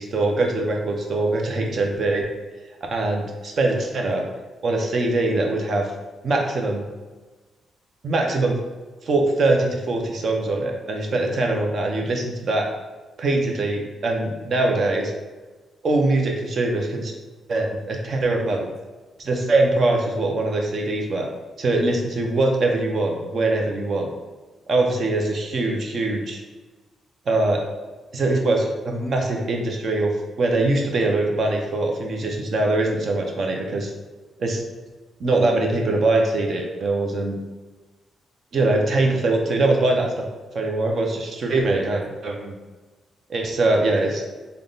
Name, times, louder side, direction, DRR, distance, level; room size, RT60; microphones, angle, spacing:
voice 1, 0.0-2.2 2.9-4.2 4.6-5.9 6.2-6.8 8.0-8.6 9.0-12.7 13.2-15.1 15.8-17.1 17.5-18.7 19.2-21.3 21.6-24.1 24.7-26.4 27.3-27.6 28.1-33.9 34.4-34.6 35.2-37.4 38.5-40.3 40.5-42.6 43.3-44.2, right 2 dB, 45° right, 2 dB, 0.6 m, -22 dB
3.5 x 2.2 x 3.9 m, 1.2 s
cardioid pair, 150°, 0 cm